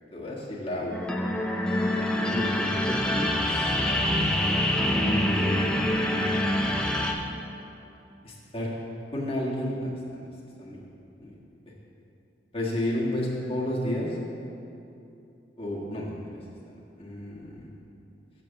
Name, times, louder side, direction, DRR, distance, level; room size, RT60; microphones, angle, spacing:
voice 1, 0.1-1.3 2.2-2.4 2.8-3.7 4.9-6.3 8.2-8.7 9.1-9.9 10.6-10.8 11.2-11.4 12.5-14.2 15.6-16.2 16.7-17.7, left 1 dB, 35° left, -4 dB, 1.6 m, -32 dB
sound 1, 0.9-7.1, left 1 dB, 5° left, 0.6 m, -25 dB
7.4 x 7.1 x 6.5 m, 2.7 s
head